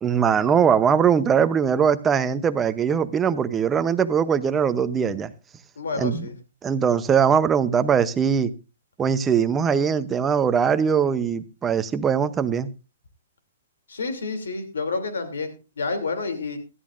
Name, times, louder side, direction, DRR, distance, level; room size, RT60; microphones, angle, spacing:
voice 1, 0.0-5.3 6.0-6.3 6.6-8.5 9.0-12.7, right 7 dB, 15° right, 0.7 m, -21 dB
voice 2, 5.8-6.4 13.9-16.6, left 4 dB, 85° left, 2.9 m, -29 dB
17.5 x 12.5 x 2.5 m
hypercardioid pair, 140°, 0 cm